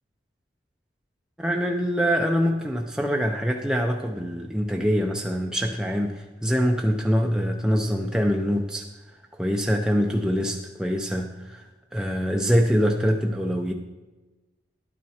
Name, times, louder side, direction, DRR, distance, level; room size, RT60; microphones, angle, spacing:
voice 1, 1.4-8.9 9.3-11.6 11.9-13.7, equal, 5° right, 1 dB, 0.5 m, -24 dB
11.5 x 9.5 x 4.3 m, 1.2 s
head